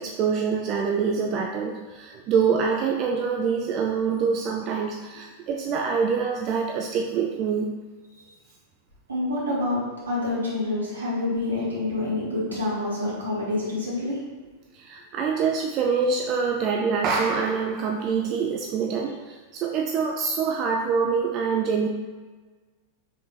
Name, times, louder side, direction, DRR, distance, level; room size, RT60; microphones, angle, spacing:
voice 1, 0.0-7.7 14.7-21.9, right 5 dB, 35° right, 1 dB, 0.4 m, -25 dB
voice 2, 9.1-14.2, left 2 dB, 75° right, -6 dB, 1.5 m, -27 dB
4.7 x 3.5 x 2.9 m, 1.3 s
figure-of-eight pair, 90°, 0 cm